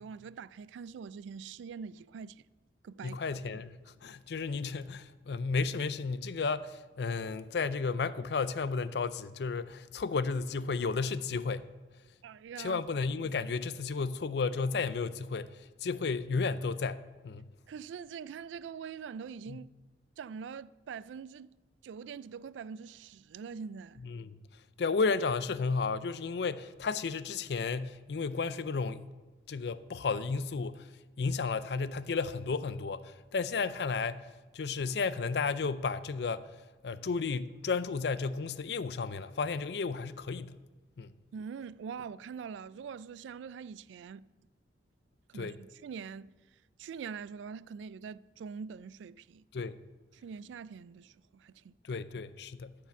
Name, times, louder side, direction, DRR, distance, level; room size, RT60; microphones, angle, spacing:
voice 1, 0.0-2.4 2.8-3.2 12.2-12.8 17.7-19.7 20.2-21.5 21.8-24.0 41.3-44.3 45.3-46.3 46.8-49.4 50.1-52.0, right 6 dB, 85° right, 0.3 m, -44 dB
voice 2, 3.0-11.7 12.6-17.5 19.5-19.6 24.0-24.4 24.8-29.0 29.5-30.9 31.2-34.2 34.5-36.5 36.8-40.6 41.0-41.1 45.3-45.6 49.5-49.8 51.8-52.8, left 4 dB, 65° left, 0.4 m, -33 dB
12.5 x 4.9 x 7.0 m
head